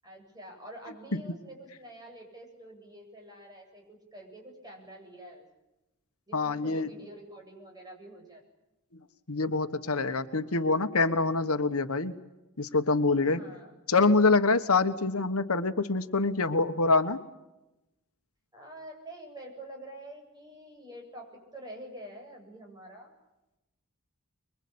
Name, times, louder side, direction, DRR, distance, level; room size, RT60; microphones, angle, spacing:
voice 1, 0.0-5.5 6.3-8.4 13.2-13.7 18.5-23.1, right 1 dB, 20° right, 1 dB, 8.0 m, -47 dB
voice 2, 6.3-6.9 9.3-12.1 12.6-13.4 13.9-17.2, left 3 dB, 70° left, 8 dB, 1.4 m, -25 dB
25.5 x 23.0 x 8.7 m, 0.97 s
head